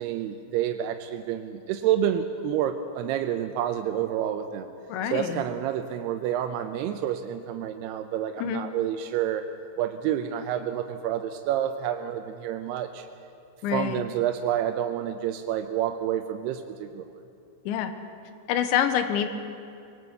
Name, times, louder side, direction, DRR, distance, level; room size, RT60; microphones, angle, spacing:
voice 1, 0.0-4.7 5.1-9.4 9.8-13.1 13.7-17.1, right 10 dB, 80° right, 6 dB, 2.5 m, -29 dB
voice 2, 4.9-5.4 8.4-8.6 13.6-14.0 17.7-17.9 18.5-19.3, left 9 dB, 90° left, 9 dB, 3.4 m, -26 dB
22.0 x 18.5 x 8.2 m, 2.6 s
omnidirectional pair, 5.2 m